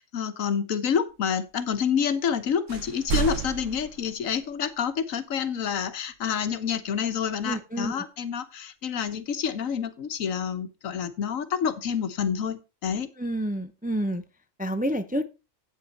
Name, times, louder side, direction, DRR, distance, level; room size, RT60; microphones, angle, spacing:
voice 1, 0.0-13.1, left 7 dB, 90° left, 12 dB, 1.4 m, -28 dB
sound 1, 2.2-2.4 2.7-4.7, right 8 dB, 70° right, 1.5 m, -32 dB
voice 2, 7.4-8.0 13.2-14.2 14.6-15.2, equal, 10° right, 9 dB, 0.5 m, -29 dB
8.8 x 8.3 x 4.1 m, 0.28 s
omnidirectional pair, 1.3 m